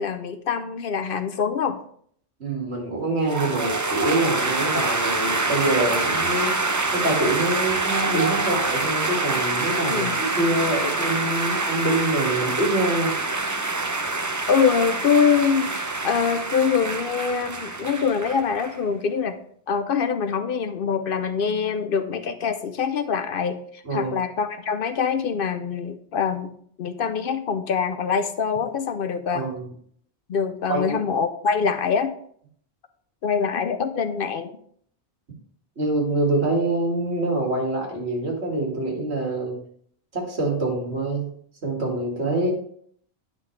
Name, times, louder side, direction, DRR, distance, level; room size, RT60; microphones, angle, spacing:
voice 1, 0.0-1.8 9.9-10.2 14.5-15.7 16.0-19.4 19.7-29.4 30.3-32.1 33.2-34.5, left 6 dB, 60° left, 9 dB, 0.7 m, -24 dB
voice 2, 2.4-6.5 6.9-13.2 23.8-24.1 29.3-29.7 30.7-31.0 35.8-39.6 40.1-41.3 41.6-42.5, right 2 dB, 75° right, -1 dB, 2.5 m, -25 dB
sound 1, 3.3-18.8, right 3 dB, 25° right, 0.4 m, -26 dB
10.0 x 5.8 x 3.2 m, 0.62 s
omnidirectional pair, 1.1 m